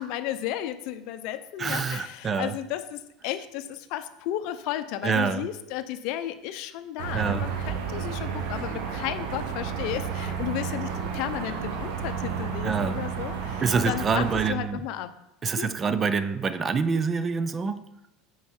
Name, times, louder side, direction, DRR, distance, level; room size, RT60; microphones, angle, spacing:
voice 1, 0.0-15.1 15.6-15.7, left 12 dB, 60° left, 10 dB, 0.7 m, -33 dB
voice 2, 1.6-2.5 5.0-5.5 7.1-7.5 12.6-13.0 13.6-14.8 15.4-17.8, right 5 dB, 25° right, 13 dB, 0.4 m, -26 dB
sound 1, 7.0-14.5, right 6 dB, 75° right, 1.1 m, -32 dB
8.8 x 4.8 x 4.4 m, 0.93 s
supercardioid pair, 140°, 0 cm